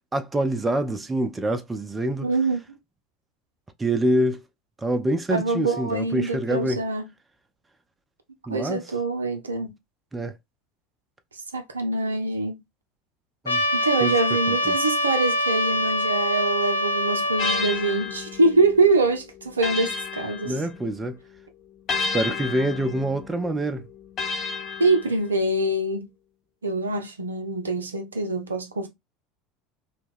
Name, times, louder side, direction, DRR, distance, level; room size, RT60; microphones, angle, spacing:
voice 1, 0.1-2.3 3.8-4.4 4.8-6.8 8.5-8.8 10.1-10.3 13.4-13.6 14.0-14.1 14.5-14.7 20.4-21.2 22.0-23.9, right 1 dB, 15° right, 0.4 m, -26 dB
voice 2, 2.2-2.6 5.3-7.0 8.5-9.7 11.5-12.6 13.7-20.6 24.8-26.1 26.6-28.9, right 2 dB, 80° right, 0.5 m, -24 dB
Trumpet, 13.5-17.6, equal, 75° left, 0.4 m, -24 dB
sound 1, 17.4-21.1 21.9-25.6, left 4 dB, 40° left, 0.8 m, -32 dB
2.8 x 2.1 x 3.3 m
figure-of-eight pair, 70°, 0 cm